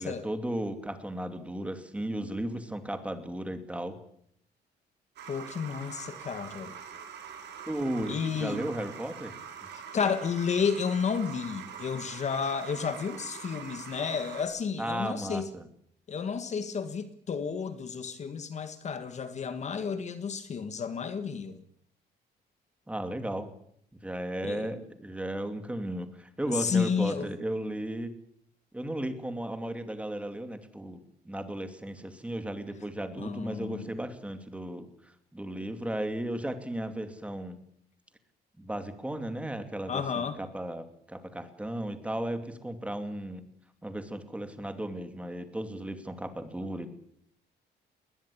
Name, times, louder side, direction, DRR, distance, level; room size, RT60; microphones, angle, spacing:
voice 1, 0.0-4.0 7.7-9.4 14.8-15.6 22.9-23.5 24.0-28.1 28.7-34.9 35.3-37.6 38.6-43.4 43.8-46.9, right 1 dB, 5° right, 2.5 m, -35 dB
sound 1, 5.2-14.4, right 7 dB, 75° right, 6.4 m, -44 dB
voice 2, 5.3-6.7 8.1-8.6 9.7-15.5 16.1-21.6 24.4-24.7 26.5-27.3 33.2-33.9 39.9-40.4, left 6 dB, 40° left, 1.7 m, -31 dB
20.5 x 20.0 x 8.6 m
cardioid pair, 155°, 18 cm